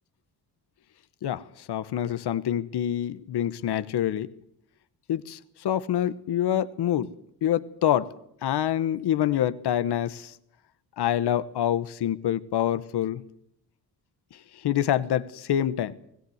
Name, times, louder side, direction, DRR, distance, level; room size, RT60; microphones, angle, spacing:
voice 1, 1.2-4.3 5.1-7.1 7.4-8.1 8.4-10.3 11.0-13.2 14.6-16.0, left 11 dB, 90° left, 1.1 m, -26 dB
20.5 x 17.5 x 7.9 m
cardioid pair, 90°, 39 cm